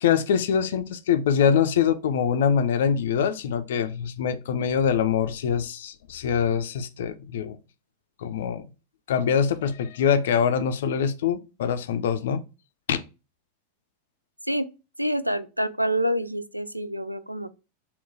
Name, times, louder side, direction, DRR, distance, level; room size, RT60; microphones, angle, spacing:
voice 1, 0.0-7.6 8.2-8.7 9.1-12.4 12.9-13.0, left 7 dB, 60° left, 0.4 m, -24 dB
voice 2, 15.0-17.5, equal, 90° right, 0.3 m, -27 dB
3.7 x 2.2 x 3.9 m
figure-of-eight pair, 90°, 0 cm